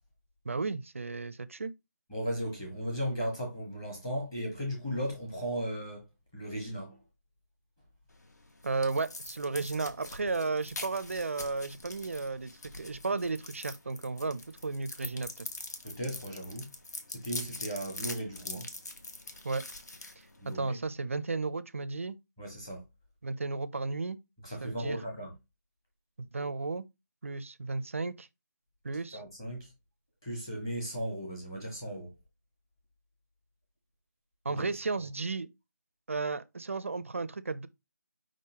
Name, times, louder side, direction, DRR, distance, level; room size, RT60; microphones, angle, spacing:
voice 1, 0.5-1.7 8.6-15.5 19.4-19.6 20.6-22.2 23.2-24.2 24.6-25.0 26.2-26.8 27.2-28.3 28.8-29.2 34.4-35.5 36.1-37.7, right 3 dB, 45° right, 0.4 m, -34 dB
voice 2, 2.1-6.1 6.3-7.0 15.8-16.7 17.1-18.7 20.4-20.8 22.4-22.8 24.4-25.4 29.1-29.7 30.2-32.1 34.5-34.6, equal, 10° left, 1.0 m, -36 dB
sound 1, 8.1-20.8, left 2 dB, 60° left, 1.2 m, -44 dB
4.9 x 3.7 x 2.8 m
figure-of-eight pair, 175°, 10 cm